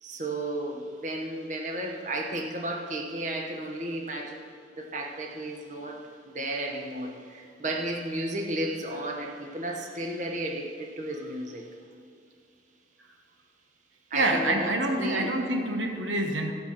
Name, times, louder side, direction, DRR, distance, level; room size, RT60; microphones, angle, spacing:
voice 1, 0.0-11.7 14.1-15.3, right 1 dB, 40° right, 1 dB, 1.0 m, -33 dB
voice 2, 14.1-16.5, right 1 dB, 90° right, 4 dB, 1.2 m, -26 dB
14.0 x 5.9 x 7.3 m, 2.5 s
head